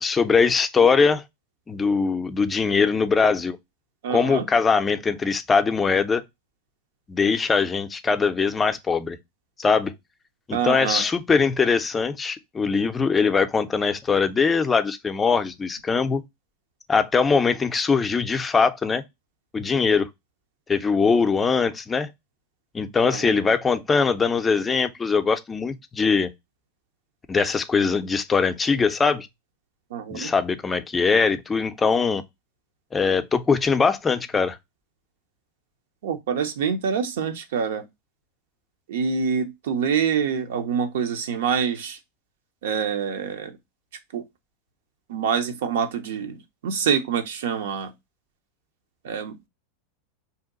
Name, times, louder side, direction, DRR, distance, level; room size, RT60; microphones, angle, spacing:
voice 1, 0.0-1.2 1.7-3.6 4.1-6.2 7.1-9.2 9.6-9.9 10.5-16.2 16.9-19.0 19.5-20.1 20.7-22.1 22.7-26.3 27.3-29.3 30.1-32.2 32.9-34.6, left 5 dB, 20° left, 0.4 m, -21 dB
voice 2, 4.0-4.5 10.5-11.0 23.0-23.4 29.9-30.3 36.0-37.8 38.9-42.0 42.6-43.6 44.1-44.2 45.1-46.4 46.6-47.9 49.0-49.5, right 7 dB, 75° right, 0.6 m, -26 dB
2.7 x 2.2 x 3.7 m
hypercardioid pair, 105°, 0 cm